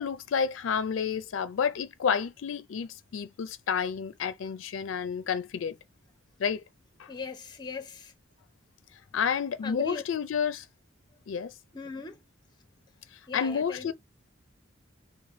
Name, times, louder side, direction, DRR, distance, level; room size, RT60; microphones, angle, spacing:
voice 1, 0.0-5.8 6.4-6.6 7.0-7.1 9.1-10.6 11.3-11.5 13.3-13.9, left 7 dB, 80° left, 0.4 m, -30 dB
voice 2, 7.1-8.1 9.6-10.0 11.7-12.2 13.3-13.9, left 3 dB, 20° left, 0.6 m, -39 dB
3.2 x 2.1 x 4.1 m
head